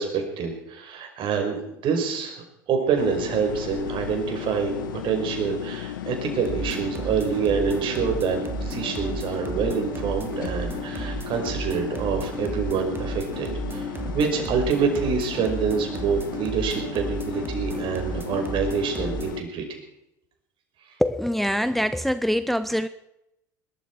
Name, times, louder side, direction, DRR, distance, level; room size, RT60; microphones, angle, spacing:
voice 1, 0.0-1.6 1.8-2.4 2.7-13.9 14.1-19.6, right 6 dB, 50° right, 3 dB, 5.4 m, -26 dB
sound 1, 3.0-19.4, left 11 dB, 85° left, 1.2 m, -35 dB
sound 2, 6.4-19.3, right 3 dB, 20° right, 2.6 m, -33 dB
voice 2, 21.0-22.9, equal, ahead, 12 dB, 0.7 m, -24 dB
20.5 x 13.0 x 4.7 m, 0.84 s
hypercardioid pair, 80°, 11 cm